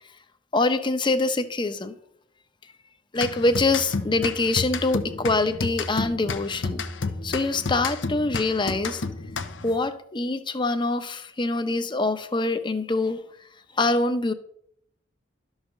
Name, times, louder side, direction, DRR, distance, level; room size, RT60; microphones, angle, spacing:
voice 1, 0.5-1.9 3.1-6.8 7.2-9.0 9.6-13.2 13.8-14.3, left 2 dB, 25° left, 10 dB, 0.8 m, -24 dB
sound 1, 3.2-9.8, left 4 dB, 85° left, 0.9 m, -31 dB
12.0 x 4.9 x 6.5 m, 0.67 s
head